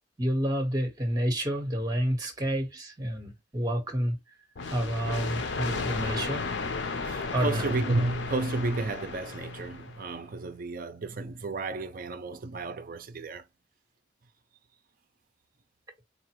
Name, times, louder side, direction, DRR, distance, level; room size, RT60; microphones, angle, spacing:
voice 1, 0.2-4.2 4.7-6.4 7.3-7.7, equal, 20° right, 1.3 m, -29 dB
sound 1, 4.6-10.1, left 4 dB, 90° left, 0.6 m, -34 dB
voice 2, 7.0-13.4, right 2 dB, 55° right, 0.5 m, -32 dB
4.1 x 2.5 x 3.0 m
head